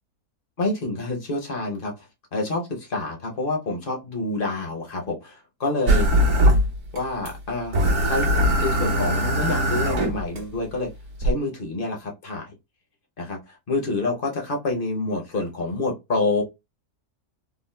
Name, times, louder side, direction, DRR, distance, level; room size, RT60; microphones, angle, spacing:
voice 1, 0.6-1.9 2.3-6.1 6.9-8.3 8.6-10.9 11.2-12.6 13.2-16.4, left 2 dB, 45° left, 0.8 m, -27 dB
sound 1, 5.9-7.0 7.2-7.3 7.7-10.4 11.2-11.3, equal, 55° right, 1.1 m, -20 dB
3.8 x 2.3 x 2.2 m
omnidirectional pair, 1.6 m